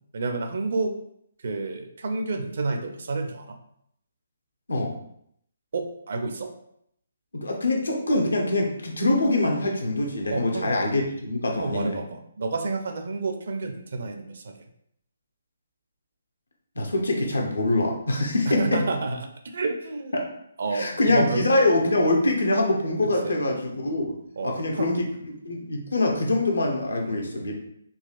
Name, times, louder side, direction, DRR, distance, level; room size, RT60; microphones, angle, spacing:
voice 1, 0.1-1.0 1.4-3.6 5.7-6.5 10.3-10.7 11.5-14.6 18.5-20.2 20.6-21.5 23.2-23.4 24.4-24.9 27.0-27.2, right 3 dB, 55° right, 5 dB, 0.5 m, -30 dB
voice 2, 7.3-12.0 16.8-18.8 20.7-24.1 24.4-25.0 25.4-27.5, left 2 dB, 75° left, 1 dB, 0.8 m, -24 dB
3.9 x 2.8 x 2.4 m, 0.71 s
figure-of-eight pair, 140°, 0 cm